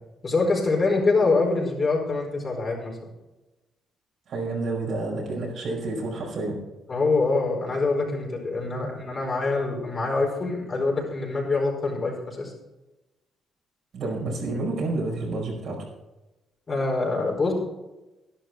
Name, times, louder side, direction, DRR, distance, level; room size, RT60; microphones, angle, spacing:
voice 1, 0.2-3.1 6.9-12.5 16.7-17.5, left 3 dB, 35° left, -1 dB, 4.6 m, -25 dB
voice 2, 4.3-6.6 8.1-8.2 8.7-8.9 13.9-15.8, right 2 dB, 65° right, -1 dB, 5.1 m, -29 dB
11.5 x 11.5 x 4.5 m, 1.0 s
cardioid pair, 90°, 0 cm